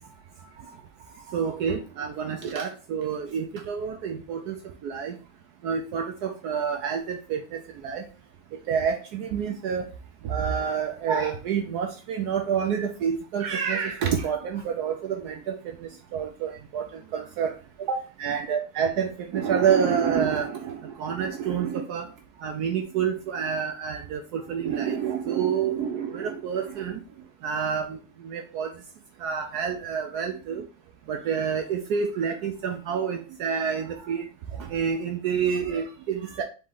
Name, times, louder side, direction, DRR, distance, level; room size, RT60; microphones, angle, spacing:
voice 1, 1.3-5.2 5.6-8.1 8.7-9.8 10.2-22.1 22.4-27.0 27.4-28.7 29.2-30.6 31.1-34.2 34.5-36.4, right 7 dB, 70° right, 5 dB, 0.9 m, -28 dB
4.0 x 3.3 x 3.6 m, 0.34 s
omnidirectional pair, 2.0 m